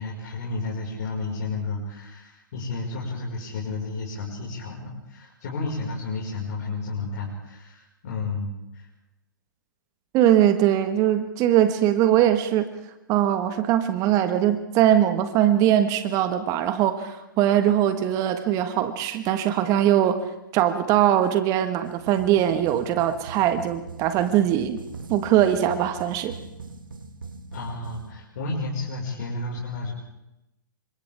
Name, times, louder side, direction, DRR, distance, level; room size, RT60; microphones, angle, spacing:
voice 1, 0.0-8.9 27.5-29.9, left 3 dB, 55° left, -3 dB, 5.5 m, -32 dB
voice 2, 10.1-12.7 13.1-20.2 20.5-24.8 25.1-26.3, right 11 dB, 30° right, 9 dB, 1.6 m, -21 dB
sound 1, 21.8-28.1, right 3 dB, 80° right, 2.1 m, -41 dB
29.5 x 25.5 x 3.6 m, 0.91 s
hypercardioid pair, 120°, 11 cm